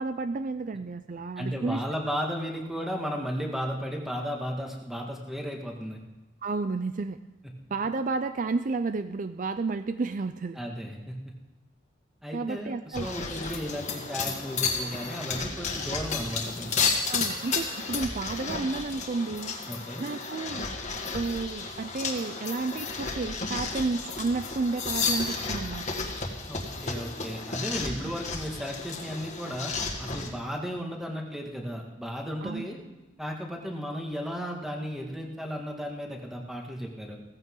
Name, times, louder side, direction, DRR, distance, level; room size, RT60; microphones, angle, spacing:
voice 1, 0.0-1.8 6.4-7.2 7.7-10.6 12.3-13.1 17.0-19.5 20.0-20.7 21.1-25.9 28.0-28.1 32.4-32.7, right 3 dB, 45° right, 11 dB, 0.4 m, -31 dB
voice 2, 1.4-6.0 10.5-11.3 12.2-16.8 19.7-20.0 26.5-29.7 30.0-32.8 33.2-37.2, equal, ahead, 0 dB, 1.9 m, -34 dB
sound 1, 12.9-30.3, left 4 dB, 40° left, 1.9 m, -32 dB
16.5 x 15.0 x 3.8 m, 1.1 s
head